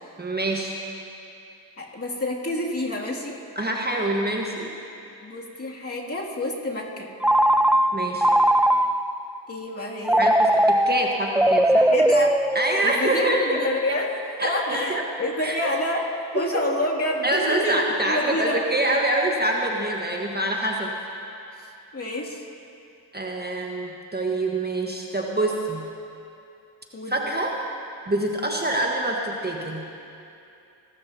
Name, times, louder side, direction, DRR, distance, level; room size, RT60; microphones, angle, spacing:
voice 1, 0.2-0.8 3.5-4.7 7.9-8.3 10.2-11.9 12.5-13.6 14.4-15.0 15.4-15.7 17.2-20.9 23.1-25.8 27.1-27.5 28.1-29.8, right 1 dB, 20° right, 0 dB, 1.4 m, -25 dB
voice 2, 1.8-3.4 5.2-7.1 9.5-10.2 11.9-12.4 12.8-16.0 16.3-17.8 18.1-18.6 21.6-22.5 26.9-27.1, left 1 dB, 30° left, -3 dB, 2.6 m, -28 dB
Telephone, 7.2-9.2 10.1-13.1, right 1 dB, 5° right, 0.4 m, -20 dB
22.5 x 13.0 x 2.9 m, 2.7 s
cardioid pair, 55°, 44 cm